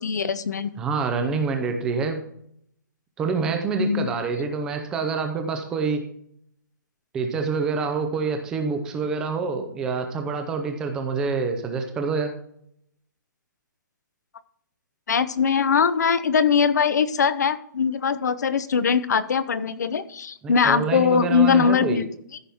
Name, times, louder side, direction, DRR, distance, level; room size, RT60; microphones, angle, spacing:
voice 1, 0.0-0.7 3.8-4.1 15.1-22.1, left 6 dB, 55° left, 14 dB, 0.8 m, -21 dB
voice 2, 0.8-2.2 3.2-6.0 7.1-12.3 20.4-22.0, right 4 dB, 5° right, 5 dB, 0.6 m, -26 dB
14.0 x 6.0 x 3.5 m, 0.69 s
hypercardioid pair, 180°, 11 cm